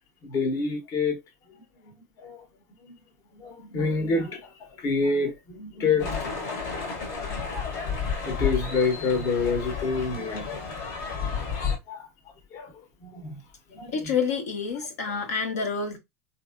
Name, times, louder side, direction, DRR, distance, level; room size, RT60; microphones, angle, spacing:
voice 1, 0.2-1.2 1.5-2.4 2.8-2.9 3.3-6.2 7.8-7.9 8.2-10.6 11.9-12.1 12.5-13.4 13.7-14.1 15.0-15.1, left 4 dB, 45° left, 1.0 m, -28 dB
sound 1, 6.0-11.8, left 6 dB, 60° left, 1.2 m, -31 dB
voice 2, 13.9-16.0, left 5 dB, 85° left, 1.0 m, -28 dB
3.1 x 2.6 x 2.5 m
supercardioid pair, 115°, 8 cm